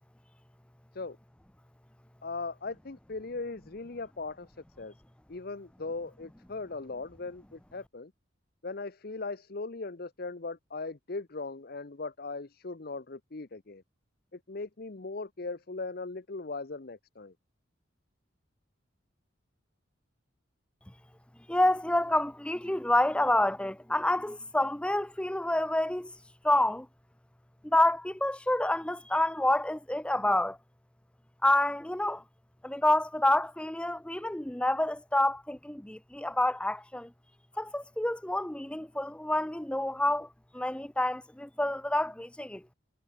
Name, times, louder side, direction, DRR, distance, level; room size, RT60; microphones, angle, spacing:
voice 1, 2.2-4.9 5.3-8.1 8.6-13.8 14.3-17.3, left 3 dB, 50° left, 0.8 m, -39 dB
voice 2, 21.5-26.1 26.4-26.9 27.6-30.6 31.4-32.2 32.6-37.1 37.6-40.3 40.5-42.6, left 1 dB, 5° left, 0.5 m, -28 dB
head